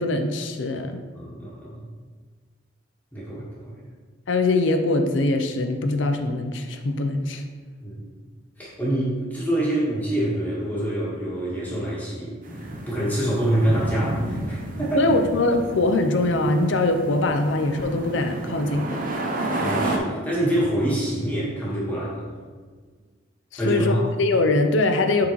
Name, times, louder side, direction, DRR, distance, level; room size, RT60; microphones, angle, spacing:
voice 1, 0.0-1.0 4.3-7.4 14.9-19.0 23.7-25.3, left 2 dB, 70° left, 6 dB, 0.6 m, -22 dB
voice 2, 1.1-1.8 3.1-3.8 7.8-8.1 8.6-15.1 19.6-22.2 23.6-24.0, right 1 dB, 10° left, -8 dB, 1.6 m, -26 dB
sound 1, 12.4-20.0, right 1 dB, 45° right, 0.8 m, -31 dB
9.3 x 3.8 x 3.1 m, 1.5 s
head